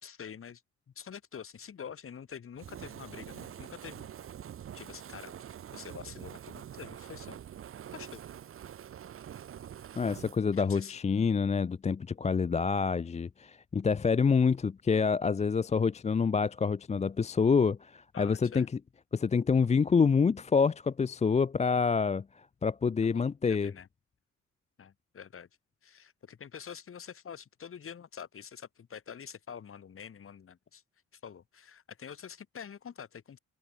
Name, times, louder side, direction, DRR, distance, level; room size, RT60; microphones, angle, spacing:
voice 1, 0.0-0.6 1.0-4.1 4.7-5.4 5.7-7.4 7.9-8.2 10.5-11.0 18.1-18.7 23.0-23.9 24.8-25.5 25.8-30.8 31.1-33.4, left 7 dB, 45° left, 2.3 m, -46 dB
Fire, 2.6-10.4, right 10 dB, 45° right, 0.8 m, -45 dB
voice 2, 10.0-18.7 19.1-23.7, left 5 dB, 20° left, 0.5 m, -27 dB
cardioid pair, 90°, 30 cm